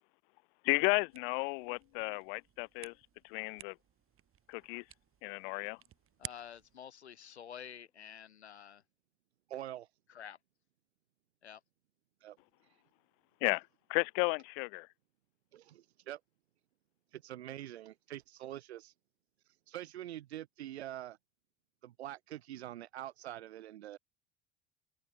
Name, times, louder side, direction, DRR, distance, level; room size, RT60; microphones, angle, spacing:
voice 1, 0.6-2.9 3.3-3.7 4.5-4.8 5.2-5.8 13.4-13.6 13.9-14.9, left 34 dB, 60° left, 0.9 m, -33 dB
sound 1, 1.1-6.8, right 10 dB, 40° right, 3.1 m, -54 dB
voice 2, 6.2-8.8 10.1-10.4 11.4-11.6, left 9 dB, 80° left, 2.7 m, -49 dB
voice 3, 9.5-9.9 12.2-12.4 15.5-16.2 17.1-18.9 19.7-21.2 21.8-24.0, right 13 dB, 75° right, 3.6 m, -45 dB
figure-of-eight pair, 65°, 33 cm